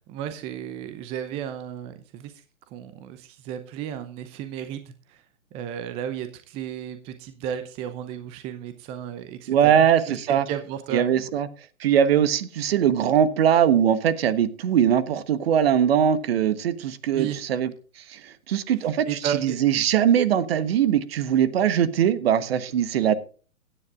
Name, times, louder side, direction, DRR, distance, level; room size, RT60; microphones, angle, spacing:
voice 1, 0.0-2.3 2.7-5.2 5.5-11.3 17.1-17.4 19.1-19.6, right 9 dB, 15° right, 10 dB, 0.6 m, -34 dB
voice 2, 9.5-10.4 10.9-11.5 11.8-17.7 18.1-23.2, right 9 dB, 45° right, 15 dB, 1.3 m, -21 dB
16.5 x 10.0 x 2.5 m, 0.37 s
figure-of-eight pair, 125°, 41 cm